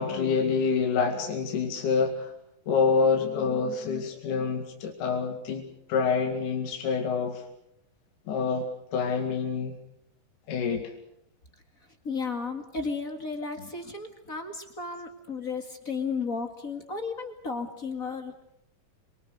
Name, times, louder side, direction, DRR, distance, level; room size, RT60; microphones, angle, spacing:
voice 1, 0.0-2.3 2.7-7.4 8.3-9.8 10.5-10.9, left 5 dB, 65° left, 3 dB, 3.6 m, -27 dB
voice 2, 12.0-18.3, left 4 dB, 30° left, 5 dB, 2.0 m, -34 dB
27.5 x 23.5 x 6.7 m, 0.76 s
omnidirectional pair, 3.9 m